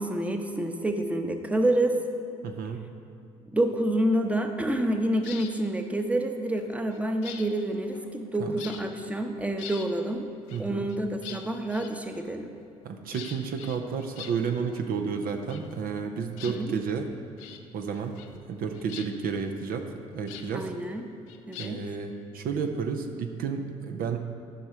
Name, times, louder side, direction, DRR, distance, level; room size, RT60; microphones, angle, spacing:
voice 1, 0.0-2.0 3.5-10.3 10.6-12.5 16.5-16.7 20.5-21.0 21.5-21.8, right 1 dB, 10° right, 5 dB, 0.9 m, -28 dB
voice 2, 2.4-2.8 8.4-8.6 10.5-10.9 12.8-17.1 17.7-18.2 18.5-20.7 21.6-24.2, right 6 dB, 60° right, 5 dB, 0.7 m, -31 dB
sound 1, 5.1-5.6 6.5-8.3 8.6-9.0 9.4-9.9 10.5-12.4 13.1-14.8 15.1-16.1 16.3-17.0 17.4-17.6 17.9-18.5 18.7-20.5 21.3-21.9, left 9 dB, 75° left, 0.6 m, -44 dB
12.0 x 5.5 x 4.5 m, 2.4 s
hypercardioid pair, 50°, 17 cm